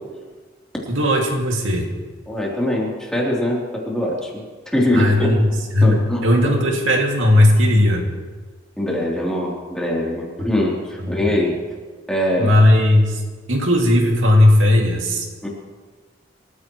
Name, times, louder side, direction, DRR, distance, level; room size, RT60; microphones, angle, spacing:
voice 1, 0.9-1.9 4.9-5.5 5.7-8.1 10.4-10.5 11.2-11.4 12.4-13.2 13.5-15.3, left 1 dB, 90° right, 1 dB, 2.4 m, -16 dB
voice 2, 2.3-4.4 4.7-5.4 5.8-6.3 8.8-11.6 12.1-12.5 15.4-15.5, left 1 dB, 5° left, -4 dB, 3.3 m, -22 dB
27.0 x 14.5 x 3.1 m, 1.4 s
head